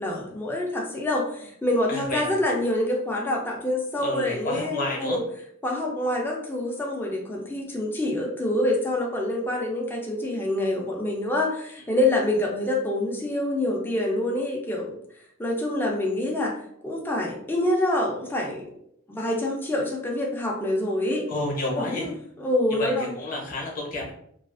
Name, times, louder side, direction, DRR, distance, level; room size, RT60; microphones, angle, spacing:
voice 1, 0.0-5.2 5.6-14.9 15.4-16.6 16.8-18.7 19.1-21.3 21.7-23.1, left 1 dB, 10° left, -2 dB, 0.4 m, -26 dB
voice 2, 1.9-2.3 4.0-5.2 21.3-22.1 22.8-24.1, left 2 dB, 40° left, -2 dB, 0.7 m, -30 dB
2.4 x 2.3 x 2.4 m, 0.69 s
head